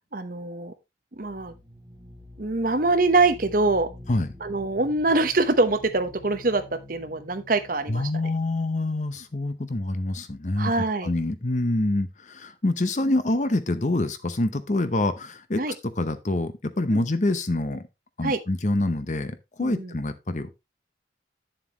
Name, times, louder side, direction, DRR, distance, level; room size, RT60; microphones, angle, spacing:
voice 1, 0.1-0.7 1.2-1.5 2.4-3.9 4.4-8.1 10.6-11.1 15.6-15.7 16.9-17.0 18.2-18.4 19.6-19.9, right 3 dB, 50° right, 0.9 m, -24 dB
sound 1, 1.1-9.8, left 1 dB, 15° right, 2.1 m, -47 dB
voice 2, 7.9-10.7 11.0-15.6 16.0-17.8 18.2-20.5, left 2 dB, 40° left, 0.8 m, -26 dB
9.3 x 7.4 x 3.0 m
head